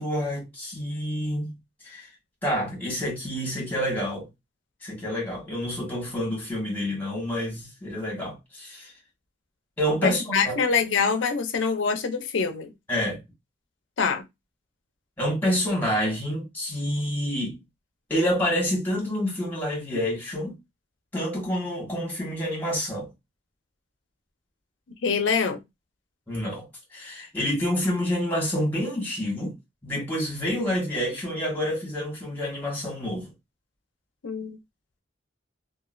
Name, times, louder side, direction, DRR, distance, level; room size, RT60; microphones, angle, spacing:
voice 1, 0.0-1.5 1.8-2.1 2.4-4.3 4.8-8.9 9.8-10.6 12.9-13.2 15.2-17.6 18.1-20.6 21.1-23.1 26.3-26.6 26.9-29.5 29.8-33.3, equal, 10° left, 1.5 m, -28 dB
voice 2, 9.9-12.7 14.0-14.2 25.0-25.6 34.2-34.6, left 5 dB, 80° left, 0.6 m, -25 dB
3.0 x 2.4 x 2.5 m
head